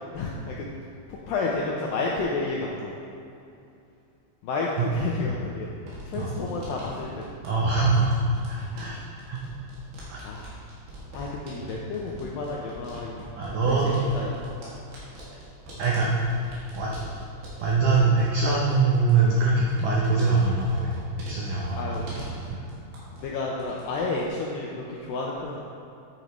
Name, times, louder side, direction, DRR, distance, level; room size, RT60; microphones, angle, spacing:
voice 1, 0.1-0.7 1.1-2.9 4.4-5.7 6.1-7.4 10.2-10.6 11.1-13.2 13.5-14.3 21.7-22.1 23.1-25.6, left 3 dB, 80° left, -3 dB, 2.0 m, -31 dB
sound 1, 5.8-23.3 23.6-24.3, equal, 65° right, 3.9 m, -43 dB
voice 2, 7.4-9.0 9.3-9.4 10.1-10.2 11.6-11.7 13.4-14.0 15.8-16.1 16.7-16.9 17.6-22.1 22.5-22.6, right 3 dB, 85° right, -3 dB, 1.8 m, -23 dB
10.0 x 9.1 x 3.1 m, 2.6 s
omnidirectional pair, 4.9 m